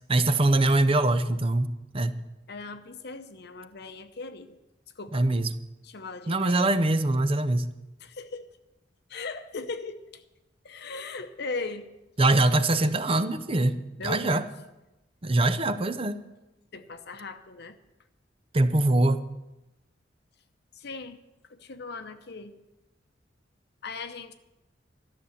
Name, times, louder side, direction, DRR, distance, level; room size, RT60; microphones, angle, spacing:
voice 1, 0.1-2.2 5.1-5.5 6.3-7.7 12.2-13.8 14.0-14.4 15.2-16.2 18.5-19.2, right 2 dB, 30° right, 12 dB, 0.7 m, -23 dB
voice 2, 2.5-4.6 5.0-5.3 5.8-6.7 8.0-8.5 9.1-10.2 10.6-11.9 14.0-14.4 16.7-17.8 20.7-21.2 21.5-22.5 23.8-24.3, left 3 dB, 60° left, 9 dB, 0.8 m, -38 dB
13.0 x 7.0 x 9.9 m, 0.99 s
head